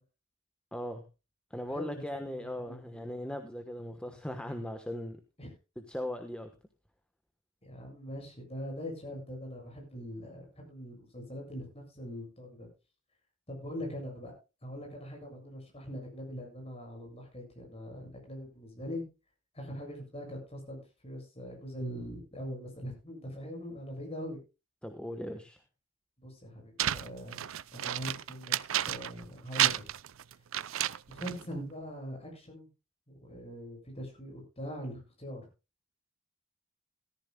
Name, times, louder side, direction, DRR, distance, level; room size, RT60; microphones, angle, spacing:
voice 1, 0.7-1.0 1.5-5.2 5.9-6.5 24.8-25.6, left 1 dB, 5° left, 1.2 m, -38 dB
voice 2, 1.7-3.1 5.4-5.5 7.6-12.7 13.5-14.3 14.6-19.0 19.5-24.4 26.2-28.5 28.8-29.9 31.1-32.7 33.1-35.5, equal, 30° left, 7.4 m, -42 dB
sound 1, 26.8-29.3 29.5-31.4, right 12 dB, 70° right, 0.5 m, -31 dB
17.5 x 14.5 x 2.3 m
head